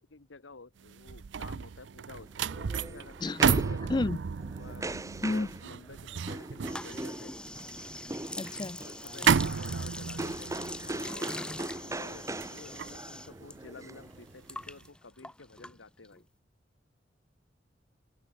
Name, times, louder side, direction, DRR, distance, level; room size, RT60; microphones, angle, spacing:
voice 1, 0.0-3.8 4.6-4.8 5.3-7.4 8.8-16.3, left 3 dB, 90° left, 1.3 m, -51 dB
sound 1, 0.9-14.2 14.6-14.8, right 6 dB, 70° right, 0.5 m, -33 dB
sound 2, 2.2-14.7, right 2 dB, 15° right, 1.1 m, -41 dB
voice 2, 3.2-4.2 5.2-5.5 8.4-8.8, left 2 dB, 25° left, 0.4 m, -31 dB
sound 3, 6.6-13.6 13.8-16.2, left 1 dB, 5° left, 1.0 m, -43 dB
head